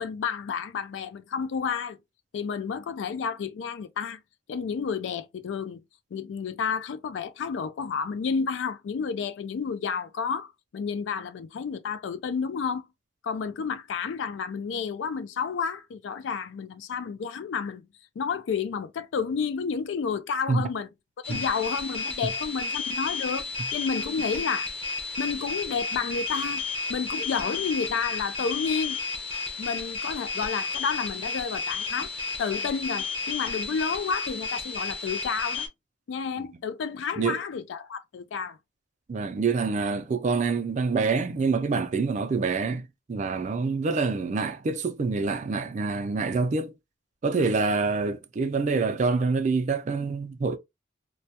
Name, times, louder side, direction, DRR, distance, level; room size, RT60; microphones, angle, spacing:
voice 1, 0.0-2.0 2.3-4.2 4.5-5.8 6.1-12.8 13.2-17.9 18.2-20.9 21.3-24.7 25.2-26.6 26.9-29.0 29.6-32.1 32.4-35.7 36.1-38.6, left 6 dB, 75° left, 0.3 m, -31 dB
sound 1, 21.2-35.7, left 3 dB, 30° left, 0.6 m, -32 dB
voice 2, 39.1-42.8 43.1-46.7 47.2-50.6, right 4 dB, 40° right, 0.4 m, -26 dB
2.2 x 2.1 x 2.7 m
head